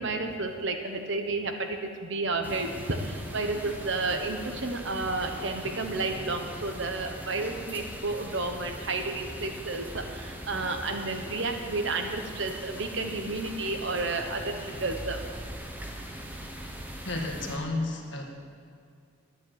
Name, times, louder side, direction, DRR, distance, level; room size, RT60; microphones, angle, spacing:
voice 1, 0.0-15.2, right 3 dB, 60° right, 5 dB, 1.1 m, -31 dB
sound 1, 2.4-17.6, right 1 dB, 10° right, 1.0 m, -41 dB
voice 2, 17.0-18.2, left 2 dB, 55° left, 1 dB, 1.7 m, -32 dB
11.0 x 9.6 x 8.1 m, 2.2 s
head